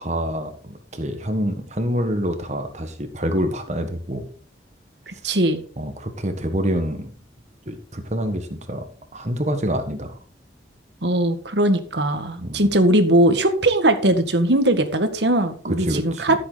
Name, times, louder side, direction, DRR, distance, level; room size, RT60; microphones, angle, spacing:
voice 1, 0.0-4.3 5.1-5.2 5.8-7.1 7.6-8.8 9.1-10.2 12.4-12.8 15.8-16.4, equal, 40° right, 6 dB, 1.6 m, -27 dB
voice 2, 5.1-5.6 11.0-16.4, right 1 dB, 75° right, 7 dB, 1.8 m, -19 dB
14.5 x 7.8 x 4.0 m, 0.43 s
head